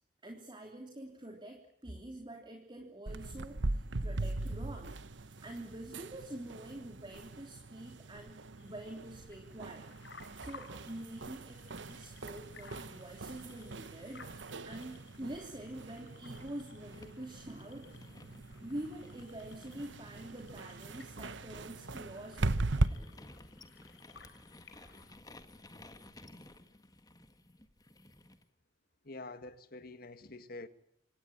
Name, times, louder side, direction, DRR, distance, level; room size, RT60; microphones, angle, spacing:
voice 1, 0.2-8.3 8.6-10.0 10.4-18.1 18.6-23.3, right 1 dB, 25° right, 3.4 m, -46 dB
sound 1, 3.1-22.9, right 2 dB, 75° right, 1.0 m, -40 dB
sound 2, 8.6-25.2, left 5 dB, 70° left, 3.7 m, -59 dB
sound 3, 11.0-16.4 16.8-28.5, left 1 dB, 20° left, 1.7 m, -58 dB
voice 2, 29.0-30.7, left 2 dB, 55° left, 2.0 m, -46 dB
26.5 x 19.0 x 8.9 m
head